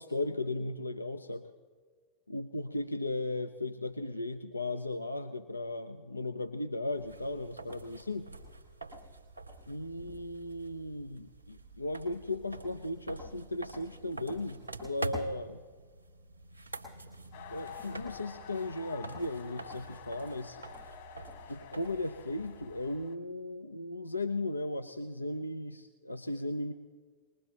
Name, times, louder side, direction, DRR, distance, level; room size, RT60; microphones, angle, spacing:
voice 1, 0.0-1.5 2.3-8.3 9.7-15.6 17.5-20.6 21.5-26.7, left 2 dB, 85° left, 8 dB, 0.6 m, -36 dB
sound 1, 6.9-23.0, right 2 dB, 90° right, 2.3 m, -46 dB
sound 2, 17.3-23.1, left 8 dB, 55° left, 1.7 m, -49 dB
23.0 x 20.5 x 2.9 m, 1.5 s
figure-of-eight pair, 90°, 0 cm